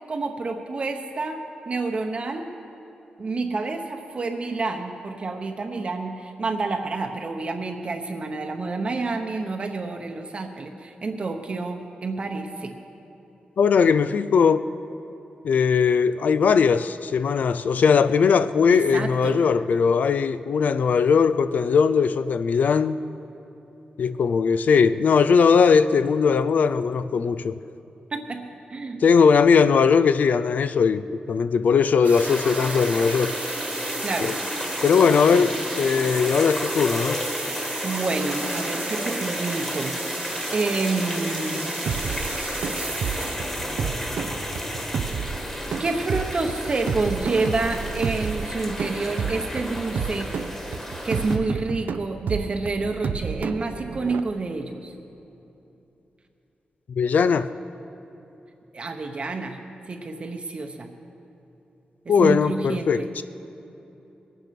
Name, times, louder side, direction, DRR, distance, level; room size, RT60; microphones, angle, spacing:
voice 1, 0.1-2.5 3.2-12.8 18.7-19.4 28.1-28.4 28.7-29.0 34.0-34.3 35.3-35.5 37.8-40.2 40.5-41.7 43.2-43.4 45.8-50.3 51.0-54.9 58.7-59.6 59.9-60.9 62.2-63.1, right 3 dB, 40° right, 0.9 m, -28 dB
voice 2, 13.6-14.7 15.4-23.0 24.0-27.6 29.0-33.4 34.2-34.4 34.8-37.2 56.9-57.5 62.1-63.2, left 6 dB, 65° left, 0.4 m, -19 dB
sound 1, 32.0-48.5, right 4 dB, 55° right, 1.2 m, -37 dB
sound 2, 32.1-51.4, equal, 15° left, 1.7 m, -32 dB
sound 3, 41.9-54.2, right 6 dB, 75° right, 0.5 m, -31 dB
21.0 x 9.2 x 5.9 m
wide cardioid pair, 145°, 3 cm